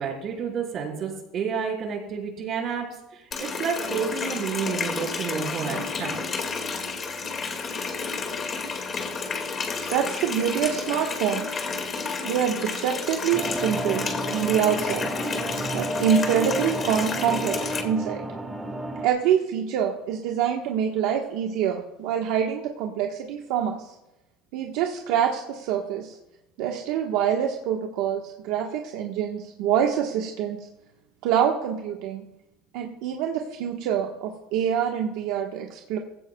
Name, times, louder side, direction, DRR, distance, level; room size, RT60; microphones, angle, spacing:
voice 1, 0.0-2.9 3.1-6.3, right 6 dB, 45° right, -1 dB, 4.8 m, -30 dB
Water tap faucet, 3.3-17.8, left 4 dB, 30° left, 2.2 m, -31 dB
voice 2, 9.9-11.6 12.2-15.1 15.7-18.2 19.0-23.9 24.5-26.2 26.6-30.6 31.2-32.2 32.7-36.0, right 9 dB, 75° right, 1 dB, 1.3 m, -26 dB
sound 1, 13.3-19.1, right 1 dB, 10° right, 1.4 m, -31 dB
17.5 x 16.5 x 2.3 m, 0.91 s
cardioid pair, 130°, 0 cm